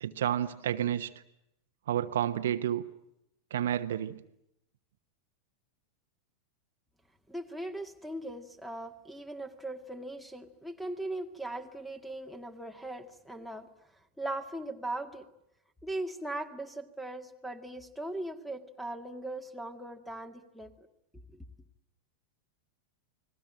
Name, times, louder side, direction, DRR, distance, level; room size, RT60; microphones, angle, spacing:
voice 1, 0.0-1.1 1.9-2.8 3.5-4.2, right 11 dB, 60° right, 9 dB, 1.1 m, -30 dB
voice 2, 7.3-15.3 15.8-20.7 21.3-21.4, right 1 dB, ahead, 10 dB, 2.0 m, -39 dB
29.5 x 20.5 x 9.0 m, 0.81 s
figure-of-eight pair, 90°, 0 cm